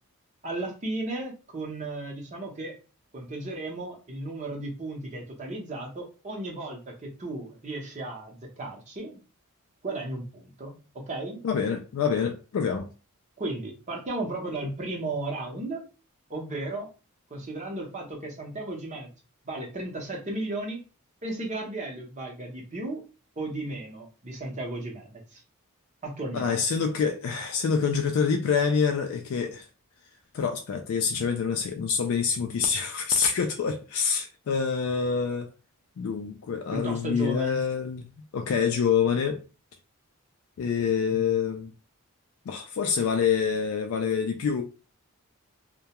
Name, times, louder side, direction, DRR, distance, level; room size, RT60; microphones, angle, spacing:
voice 1, 0.4-2.7 3.1-9.2 9.8-11.4 13.4-15.8 16.3-16.9 17.3-19.1 19.4-20.8 21.2-23.0 23.4-25.4 26.0-26.5 36.7-37.6 41.1-41.2, right 2 dB, 30° right, 0.7 m, -35 dB
voice 2, 11.4-12.9 26.3-29.7 30.3-35.5 36.0-38.0 38.3-39.4 40.6-41.7 42.5-44.6, left 6 dB, 65° left, 0.3 m, -26 dB
2.3 x 2.1 x 2.8 m
head